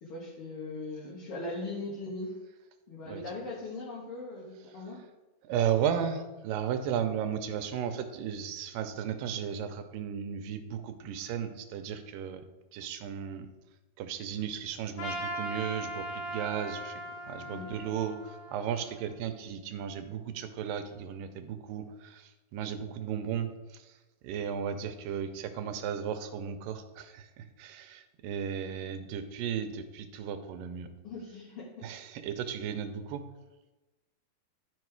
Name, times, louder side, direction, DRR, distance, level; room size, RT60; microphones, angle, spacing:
voice 1, 0.0-2.3 2.9-5.0 17.5-17.7 31.0-31.7, left 2 dB, 50° left, -5 dB, 2.0 m, -39 dB
voice 2, 5.4-12.4 12.7-13.5 14.0-24.0 24.2-30.9 31.8-33.2, right 8 dB, 90° right, 8 dB, 2.3 m, -35 dB
Trumpet, 15.0-19.3, right 1 dB, 90° left, 3.0 m, -39 dB
11.5 x 5.5 x 4.7 m, 1.1 s
omnidirectional pair, 3.9 m